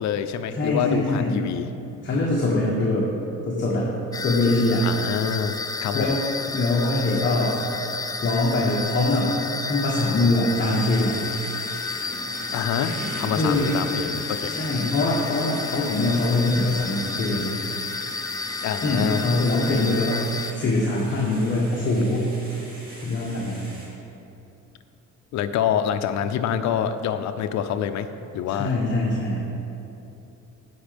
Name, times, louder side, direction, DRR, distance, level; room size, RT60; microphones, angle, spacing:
voice 1, 0.0-1.7 4.8-6.2 12.5-14.5 18.6-19.3 25.3-28.1 28.3-28.8, left 8 dB, 65° left, 9 dB, 0.6 m, -26 dB
voice 2, 0.5-1.4 2.0-3.1 3.5-3.9 4.2-4.8 5.9-6.2 6.5-7.6 8.2-9.3 9.7-11.2 13.3-13.7 14.6-17.6 18.8-20.3 20.5-22.3 23.0-23.7 28.5-29.4, left 2 dB, 40° left, -4 dB, 1.5 m, -23 dB
sound 1, 4.1-20.5, left 4 dB, 15° left, 0.3 m, -31 dB
sound 2, 10.5-23.9, right 1 dB, 30° right, 2.6 m, -41 dB
15.5 x 5.1 x 5.2 m, 2.9 s
cardioid pair, 140°, 30 cm